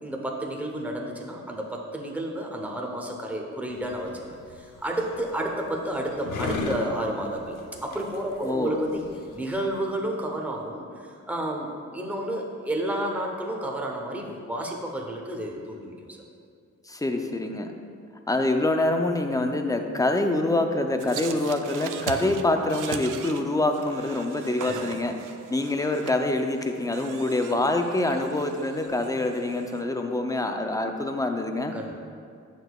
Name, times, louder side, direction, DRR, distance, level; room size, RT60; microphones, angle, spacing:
voice 1, 0.0-9.1 9.3-16.2 24.7-25.1 31.7-31.9, right 1 dB, 5° right, 0 dB, 0.8 m, -31 dB
sound 1, 3.7-9.8, left 3 dB, 80° left, 0.8 m, -37 dB
voice 2, 8.4-8.8 16.9-17.7 18.3-25.2 25.5-31.8, left 2 dB, 10° left, 5 dB, 0.5 m, -25 dB
sound 2, 21.0-29.8, right 7 dB, 80° right, 0.5 m, -40 dB
8.9 x 6.2 x 2.3 m, 2.3 s
cardioid pair, 90°, 31 cm